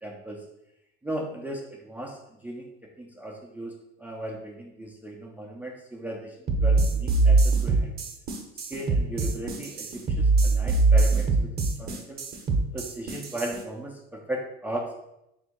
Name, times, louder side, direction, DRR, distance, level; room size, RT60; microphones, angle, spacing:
voice 1, 0.0-0.4 1.0-2.7 3.0-3.7 4.0-6.4 6.6-7.9 8.5-11.5 11.8-12.2 12.7-15.0, right 1 dB, 5° right, -1 dB, 0.4 m, -36 dB
sound 1, 6.5-13.6, right 3 dB, 30° right, 0.8 m, -22 dB
3.4 x 2.6 x 4.5 m, 0.84 s
supercardioid pair, 105°, 30 cm